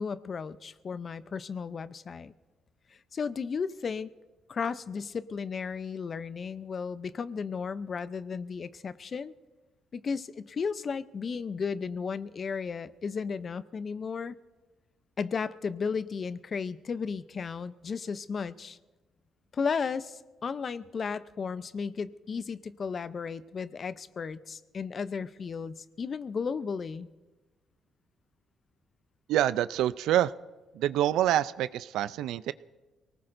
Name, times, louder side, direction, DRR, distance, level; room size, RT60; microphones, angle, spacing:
voice 1, 0.0-2.3 3.1-4.1 4.5-9.3 9.9-14.4 15.2-18.8 19.5-27.1, left 5 dB, 45° left, 15 dB, 0.6 m, -34 dB
voice 2, 29.3-30.3 30.7-32.5, right 12 dB, 85° right, 16 dB, 0.4 m, -26 dB
24.0 x 19.0 x 2.6 m, 1.3 s
cardioid pair, 90°, 0 cm